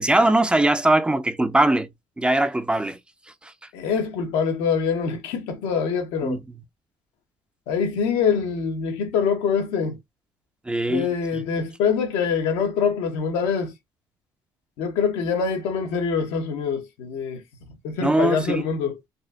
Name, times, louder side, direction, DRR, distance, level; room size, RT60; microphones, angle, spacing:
voice 1, 0.0-1.9 2.2-3.0 6.2-6.4 10.7-11.1 11.3-11.4 18.0-18.6, right 1 dB, 10° right, 0.4 m, -21 dB
voice 2, 3.7-6.4 7.7-10.0 10.9-13.7 14.8-17.4 17.8-19.0, left 6 dB, 90° left, 1.2 m, -24 dB
4.2 x 2.2 x 2.6 m
cardioid pair, 105°, 9 cm